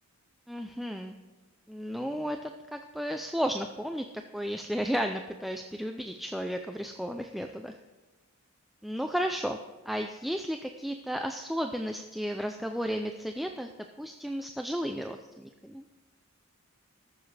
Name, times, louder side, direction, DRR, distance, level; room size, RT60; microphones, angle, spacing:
voice 1, 0.5-1.2 1.7-4.0 4.3-7.8 8.8-9.6 9.9-13.7 14.0-15.8, equal, ahead, 4 dB, 0.4 m, -33 dB
20.0 x 7.2 x 3.3 m, 1.2 s
head